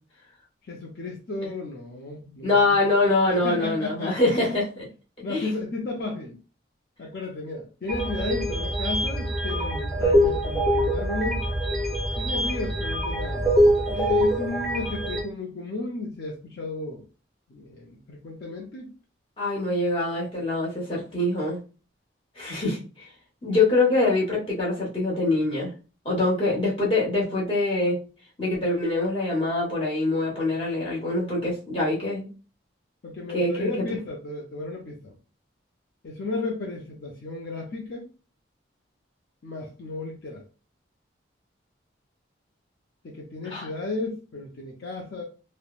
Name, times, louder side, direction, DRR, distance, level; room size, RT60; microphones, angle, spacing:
voice 1, 0.6-2.8 3.2-4.3 5.2-6.4 7.0-11.4 12.1-13.5 13.9-17.0 17.5-18.9 33.0-35.1 36.0-38.1 39.4-40.4 43.0-45.2, left 2 dB, 55° left, -1 dB, 0.5 m, -33 dB
voice 2, 2.4-4.9 5.3-5.5 19.4-21.6 22.4-23.1 23.4-25.7 26.0-28.0 28.4-32.3 33.3-33.7 43.5-43.7, left 2 dB, 30° left, -4 dB, 1.1 m, -24 dB
sound 1, 7.9-15.2, equal, ahead, 0.7 m, -24 dB
3.1 x 2.1 x 2.3 m, 0.35 s
head